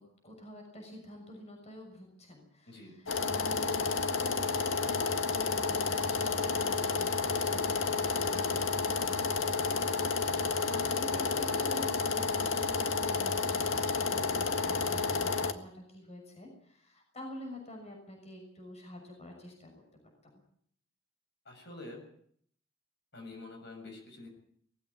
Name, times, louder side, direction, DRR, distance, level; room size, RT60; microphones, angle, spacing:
voice 1, 0.0-7.6 8.0-9.9 10.2-19.7 20.0-20.4, left 1 dB, 35° left, 2 dB, 6.4 m, -48 dB
voice 2, 2.7-3.0 8.3-8.7 21.5-22.0 23.1-24.3, left 2 dB, 60° left, 3 dB, 6.9 m, -47 dB
sound 1, 3.1-15.5, left 4 dB, 85° left, 1.7 m, -30 dB
20.0 x 16.0 x 9.6 m, 0.64 s
head